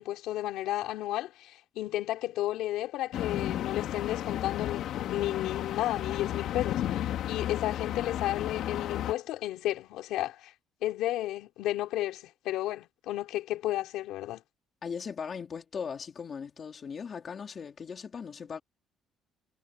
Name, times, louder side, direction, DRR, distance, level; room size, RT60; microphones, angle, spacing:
voice 1, 0.0-10.5 10.8-14.4, left 14 dB, 80° left, 3.8 m, -33 dB
sound 1, 3.1-9.1, left 11 dB, 60° left, 2.4 m, -33 dB
voice 2, 14.8-18.6, left 6 dB, 30° left, 3.2 m, -38 dB
cardioid pair, 165°, 0 cm